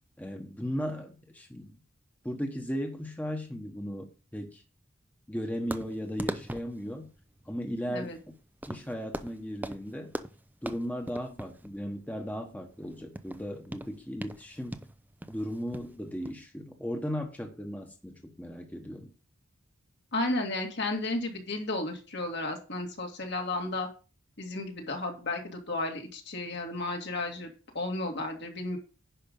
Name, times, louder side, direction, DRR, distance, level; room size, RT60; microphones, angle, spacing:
voice 1, 0.2-1.8 2.2-4.6 5.3-7.1 7.4-8.3 8.7-10.1 10.6-14.8 15.3-19.1, equal, 10° left, 1.2 m, -36 dB
sound 1, 5.7-16.3, right 1 dB, 10° right, 0.5 m, -41 dB
voice 2, 20.1-23.9 24.4-28.8, left 2 dB, 60° left, 2.3 m, -33 dB
10.5 x 5.4 x 5.3 m
head